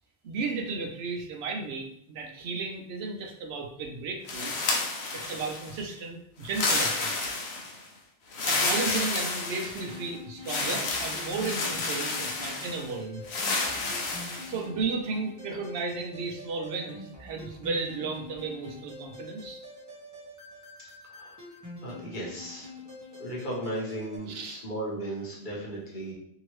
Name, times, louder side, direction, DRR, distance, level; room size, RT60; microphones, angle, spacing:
voice 1, 0.2-4.6 5.1-7.1 8.5-13.2 14.4-19.6 24.3-24.6, right 4 dB, 75° right, 2 dB, 0.8 m, -34 dB
sound 1, 4.3-5.8 6.4-7.8 8.3-10.0 10.5-12.8 13.3-14.5, left 3 dB, 80° left, 0.9 m, -30 dB
sound 2, 9.7-24.2, left 2 dB, 20° right, 0.7 m, -45 dB
voice 2, 21.8-22.7 23.2-26.1, right 1 dB, 50° left, -4 dB, 1.1 m, -36 dB
2.8 x 2.7 x 3.0 m, 0.71 s
omnidirectional pair, 1.1 m